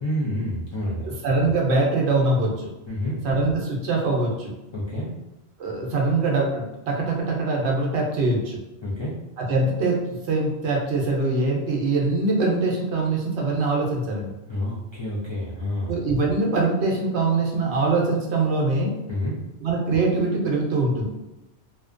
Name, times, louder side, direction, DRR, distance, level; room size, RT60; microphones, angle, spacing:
voice 1, 0.0-1.1 2.9-3.2 4.7-5.1 8.8-9.2 14.5-15.9 19.1-19.3, left 1 dB, 45° left, -9 dB, 0.3 m, -28 dB
voice 2, 1.0-2.7 3.2-4.5 5.6-8.6 9.4-14.3 15.9-18.9 19.6-21.0, right 3 dB, 70° right, -1 dB, 0.9 m, -23 dB
2.7 x 2.2 x 2.4 m, 0.96 s
omnidirectional pair, 1.2 m